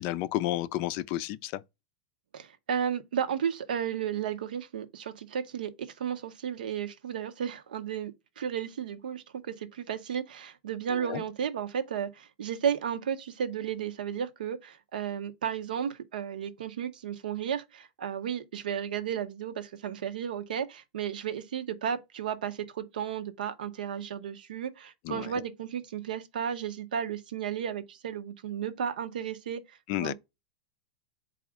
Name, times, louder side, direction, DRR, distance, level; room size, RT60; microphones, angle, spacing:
voice 1, 0.0-1.6 11.1-11.2 25.0-25.3 29.9-30.1, left 15 dB, 45° left, 0.4 m, -31 dB
voice 2, 2.3-30.1, right 8 dB, 90° right, 0.7 m, -33 dB
4.2 x 2.4 x 4.7 m
supercardioid pair, 140°, 5 cm